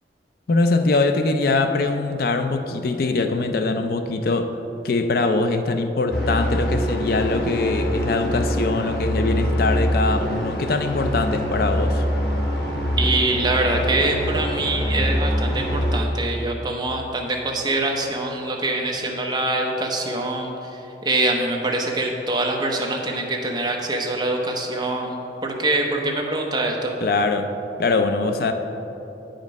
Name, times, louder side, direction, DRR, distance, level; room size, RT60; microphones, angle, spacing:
voice 1, 0.5-4.6 4.8-12.0 27.0-28.5, left 3 dB, 55° left, 7 dB, 0.4 m, -22 dB
sound 1, 6.1-16.0, equal, 70° left, 1.3 m, -24 dB
voice 2, 13.0-26.9, right 2 dB, 25° right, 1 dB, 0.8 m, -24 dB
8.7 x 5.1 x 5.2 m, 3.0 s
head